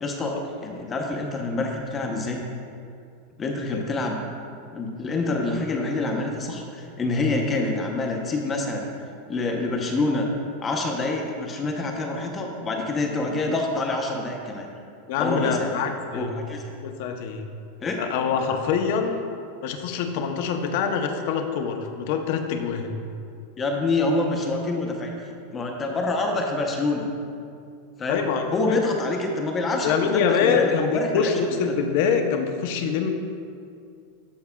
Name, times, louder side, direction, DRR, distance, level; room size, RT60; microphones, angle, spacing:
voice 1, 0.0-2.4 3.4-4.2 4.7-8.9 9.3-10.3 10.6-14.7 15.2-15.7 16.1-16.6 17.8-18.0 23.6-25.1 25.5-27.1 28.0-28.2 28.5-31.3, left 2 dB, 20° left, 2 dB, 0.7 m, -26 dB
voice 2, 15.1-16.4 16.8-17.5 18.0-19.2 19.6-22.9 28.1-28.8 29.8-33.1, left 6 dB, 60° left, 5 dB, 0.6 m, -25 dB
12.5 x 4.7 x 2.3 m, 2.4 s
supercardioid pair, 140°, 0 cm